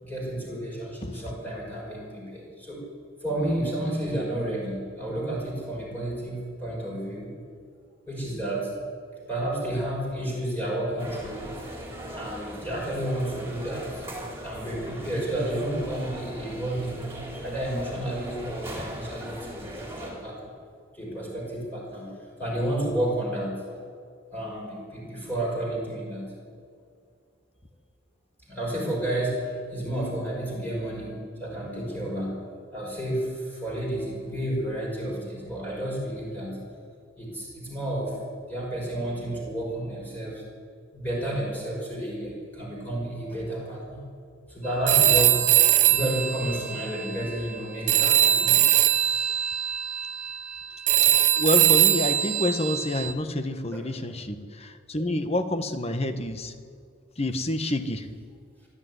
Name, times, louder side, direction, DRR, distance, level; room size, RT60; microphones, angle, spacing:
voice 1, 0.0-2.8 3.2-7.3 8.1-8.7 9.3-11.7 12.1-14.1 14.4-17.1 17.4-20.5 20.9-22.1 22.4-23.6 24.3-26.3 28.5-32.4 32.7-36.6 37.2-38.2 38.5-40.4 40.9-44.0 44.5-48.7 53.7-53.8, right 1 dB, 10° left, -4 dB, 5.5 m, -31 dB
sound 1, 11.0-20.1, equal, 10° right, 4.3 m, -39 dB
Telephone, 44.9-47.6 47.9-53.1, right 12 dB, 35° right, 0.8 m, -22 dB
voice 2, 51.0-56.5 57.2-58.1, left 1 dB, 30° left, 9 dB, 1.3 m, -28 dB
25.0 x 12.5 x 9.6 m, 2.2 s
head